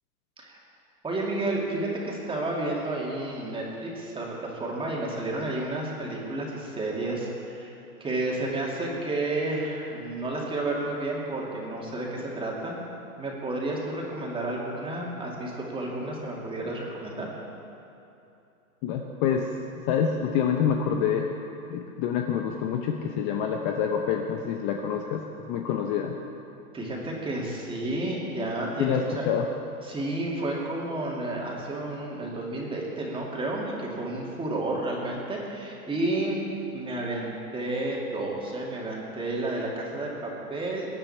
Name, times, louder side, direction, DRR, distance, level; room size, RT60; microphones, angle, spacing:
voice 1, 1.0-7.7 8.0-12.8 13.2-17.3 26.7-29.3 29.8-36.4 36.7-40.9, right 2 dB, 10° right, -3 dB, 2.8 m, -31 dB
voice 2, 18.8-19.5 19.9-21.3 21.7-26.1 28.8-29.5, left 7 dB, 35° left, 3 dB, 1.0 m, -27 dB
23.0 x 10.0 x 4.4 m, 2.8 s
hypercardioid pair, 130°, 46 cm